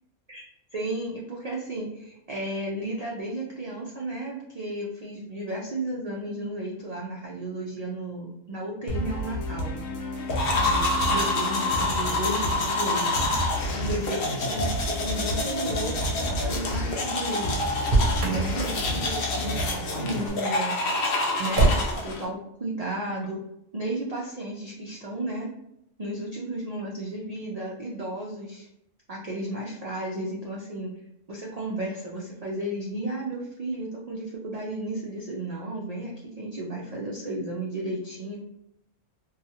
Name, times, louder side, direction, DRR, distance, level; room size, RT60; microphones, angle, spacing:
voice 1, 0.7-9.7 10.4-13.2 13.7-17.5 18.2-20.8 21.4-23.4 23.7-25.5 26.0-28.7 29.1-30.9 31.3-38.4, right 1 dB, 65° right, -3 dB, 0.3 m, -33 dB
sound 1, 8.9-20.3, equal, 80° left, 1.0 m, -31 dB
sound 2, 10.3-22.3, left 2 dB, 60° left, 0.7 m, -28 dB
Motor vehicle (road), 17.7-18.5 21.5-22.1, right 2 dB, 50° right, 0.7 m, -22 dB
2.7 x 2.3 x 2.7 m, 0.79 s
omnidirectional pair, 1.3 m